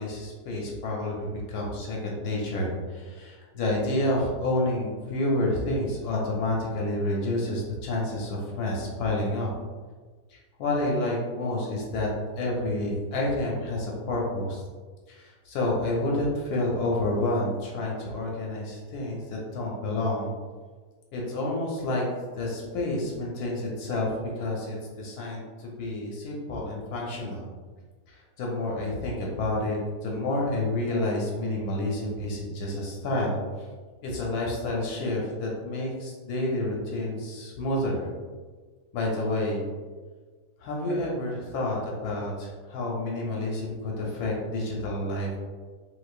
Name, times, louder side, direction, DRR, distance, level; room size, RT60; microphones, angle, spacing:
voice 1, 0.0-9.5 10.3-12.1 12.4-14.6 15.1-20.3 21.1-22.0 22.4-24.1 24.4-27.5 28.1-33.4 34.0-38.1 38.9-39.6 40.6-45.4, left 1 dB, 80° left, -2 dB, 1.1 m, -29 dB
3.9 x 2.6 x 2.4 m, 1.5 s
omnidirectional pair, 1.7 m